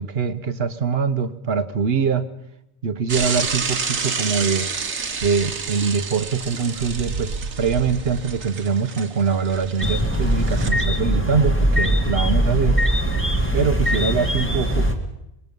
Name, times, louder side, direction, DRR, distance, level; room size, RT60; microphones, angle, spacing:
voice 1, 0.0-2.2 2.8-4.7 5.2-12.8 13.5-14.9, right 5 dB, 55° right, 11 dB, 1.3 m, -23 dB
Bicycle / Mechanisms, 3.1-10.7, right 5 dB, 85° right, 1.8 m, -29 dB
sound 1, 9.8-14.9, equal, 10° left, 2.1 m, -21 dB
25.0 x 21.0 x 5.4 m, 0.85 s
omnidirectional pair, 1.3 m